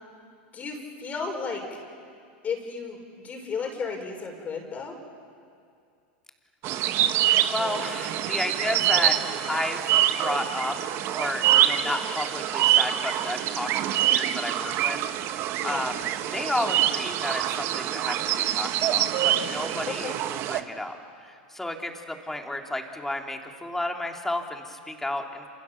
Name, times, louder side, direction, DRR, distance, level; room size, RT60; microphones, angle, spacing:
voice 1, 0.5-1.6 2.4-3.0 3.2-5.0 11.8-11.9 15.6-15.8 19.9-20.1, left 5 dB, 25° left, 3 dB, 5.5 m, -33 dB
sound 1, 6.6-20.6, right 12 dB, 45° right, 1.3 m, -25 dB
voice 2, 7.3-9.8 10.2-13.7 14.1-15.0 15.3-16.0 16.3-21.0 21.2-25.5, left 1 dB, 5° left, 3 dB, 2.9 m, -32 dB
28.0 x 27.5 x 7.2 m, 2.4 s
hypercardioid pair, 120°, 6 cm